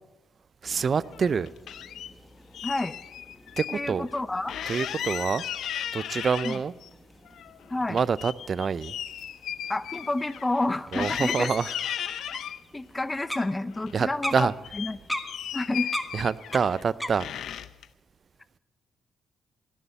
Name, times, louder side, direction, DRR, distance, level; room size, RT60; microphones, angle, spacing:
sound 1, 0.6-17.6, equal, ahead, 1.5 m, -43 dB
voice 1, 0.6-1.5 3.6-4.1 4.7-5.4 5.9-6.7 7.9-8.9 10.9-11.7 13.9-14.5 16.1-17.3, right 6 dB, 50° right, 0.4 m, -26 dB
sound 2, 1.0-2.1 2.5-3.8 4.1-4.2 4.5-6.9 7.2-10.7 10.9-12.6 13.2-14.0 14.3-16.8 17.2-17.9, left 10 dB, 70° left, 0.6 m, -36 dB
voice 2, 2.6-3.0 3.7-4.5 6.4-6.6 7.7-8.0 9.7-11.5 12.7-15.0 15.5-15.9, left 2 dB, 20° left, 0.7 m, -29 dB
18.0 x 6.9 x 8.3 m
supercardioid pair, 55°, 0 cm